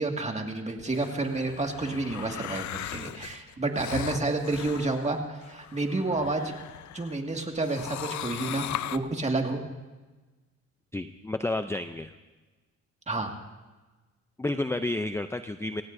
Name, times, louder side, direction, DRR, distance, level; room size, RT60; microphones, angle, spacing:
voice 1, 0.0-6.5 6.9-8.7 8.9-9.6 13.1-13.3, right 2 dB, 20° right, 3 dB, 2.1 m, -30 dB
sound 1, 0.8-7.2 7.5-9.0, left 13 dB, 70° left, 0.6 m, -39 dB
voice 2, 10.9-12.1 14.4-15.8, left 2 dB, 10° left, 9 dB, 0.5 m, -30 dB
26.5 x 16.0 x 2.7 m, 1.2 s
cardioid pair, 90°, 30 cm